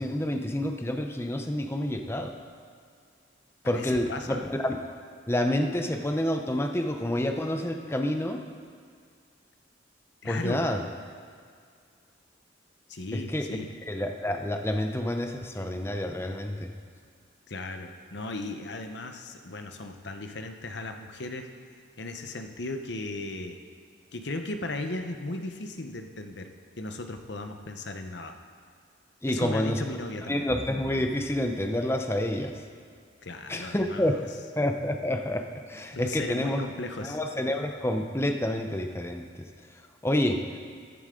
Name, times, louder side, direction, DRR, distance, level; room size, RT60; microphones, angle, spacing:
voice 1, 0.0-2.3 3.6-4.8 5.3-8.4 10.2-10.8 13.1-13.6 13.9-16.7 29.2-29.8 30.3-32.6 33.5-34.1 34.6-36.6 37.0-39.5 40.0-40.4, left 1 dB, 15° left, 5 dB, 0.6 m, -28 dB
voice 2, 3.6-4.4 10.2-10.7 12.9-13.7 17.5-21.5 22.0-23.6 24.1-26.5 26.8-28.4 29.3-30.5 33.2-34.2 35.9-37.2, left 2 dB, 65° left, 6 dB, 0.9 m, -36 dB
Bowed string instrument, 30.5-34.7, equal, 10° right, 1.1 m, -50 dB
15.0 x 11.0 x 3.8 m, 2.1 s
head